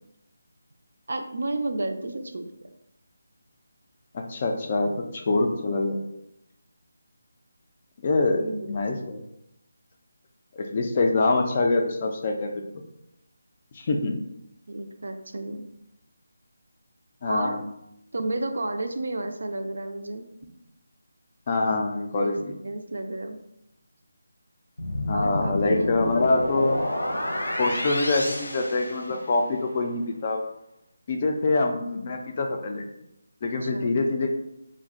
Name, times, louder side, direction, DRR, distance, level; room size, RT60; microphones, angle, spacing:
voice 1, 1.1-2.7 8.3-9.1 14.7-15.7 17.3-17.6 18.1-20.3 22.1-22.3 22.6-23.4 25.1-25.9 33.6-34.0, right 2 dB, 70° right, 7 dB, 0.3 m, -32 dB
voice 2, 4.1-6.0 8.0-9.2 10.5-12.8 13.7-14.2 17.2-17.6 21.5-22.5 25.1-26.8 27.6-30.4 31.1-32.8 33.4-34.3, left 3 dB, 30° left, 3 dB, 0.3 m, -25 dB
sound 1, 24.8-29.5, left 1 dB, 90° left, 0.8 m, -29 dB
2.4 x 2.1 x 3.6 m, 0.83 s
figure-of-eight pair, 170°, 0 cm